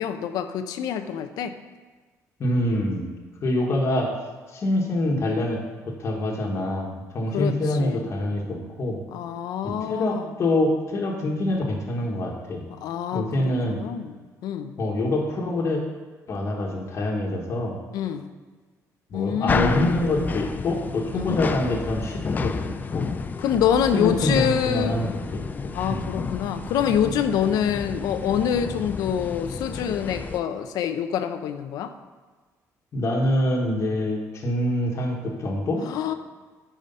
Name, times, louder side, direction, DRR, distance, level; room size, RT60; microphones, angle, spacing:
voice 1, 0.0-1.5 7.3-7.5 7.8-8.0 9.1-10.2 12.7-14.7 17.9-18.3 19.1-20.0 21.1-21.4 23.4-25.0 25.7-31.9 35.9-36.1, left 8 dB, 85° left, 9 dB, 0.6 m, -26 dB
voice 2, 2.4-3.1 3.4-4.2 4.5-5.6 5.9-9.0 9.6-12.6 13.1-13.8 14.8-15.8 16.3-17.8 19.1-23.1 23.9-25.4 25.9-26.0 32.9-35.8, left 1 dB, 45° left, -1 dB, 1.3 m, -25 dB
sound 1, 19.5-30.4, left 4 dB, 25° left, 0.4 m, -31 dB
9.2 x 5.1 x 5.5 m, 1.4 s
cardioid pair, 135°, 6 cm